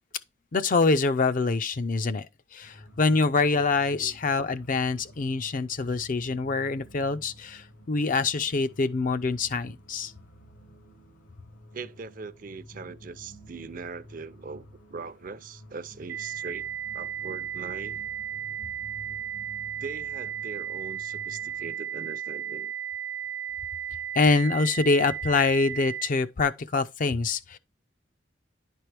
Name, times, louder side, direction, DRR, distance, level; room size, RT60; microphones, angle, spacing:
voice 1, 0.5-2.3 2.5-10.1 24.2-27.6, left 3 dB, 45° left, 0.5 m, -25 dB
sound 1, 2.6-21.7, equal, 75° left, 1.4 m, -51 dB
voice 2, 11.7-18.1 19.8-22.7, right 4 dB, 45° right, 0.5 m, -41 dB
sound 2, 16.1-26.1, right 9 dB, 90° right, 1.0 m, -35 dB
10.5 x 4.6 x 3.3 m
head